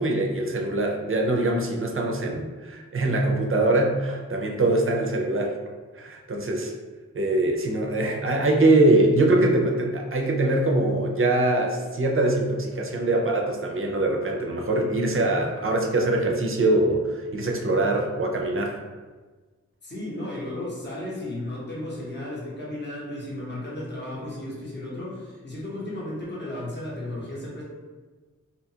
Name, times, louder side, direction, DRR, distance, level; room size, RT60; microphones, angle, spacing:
voice 1, 0.0-5.5 5.9-6.7 7.1-18.8, right 2 dB, 45° right, 0 dB, 0.4 m, -23 dB
voice 2, 19.8-27.6, left 1 dB, 35° left, -6 dB, 0.8 m, -34 dB
2.7 x 2.3 x 2.7 m, 1.4 s
wide cardioid pair, 65°, 30 cm